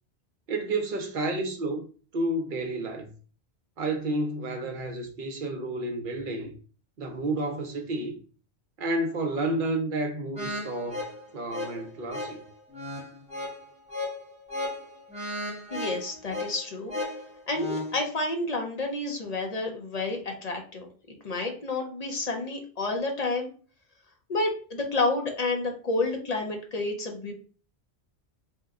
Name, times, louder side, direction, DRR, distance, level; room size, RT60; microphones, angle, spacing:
voice 1, 0.5-1.9 2.1-3.1 3.8-6.5 7.0-8.2 8.8-11.0 11.3-12.4, right 2 dB, 55° right, 0.8 m, -30 dB
sound 1, 10.4-18.0, left 1 dB, 5° right, 0.7 m, -35 dB
voice 2, 15.7-17.0 17.5-20.9 21.2-23.5 24.3-27.3, left 2 dB, 45° left, 0.6 m, -30 dB
2.8 x 2.2 x 3.5 m
omnidirectional pair, 1.1 m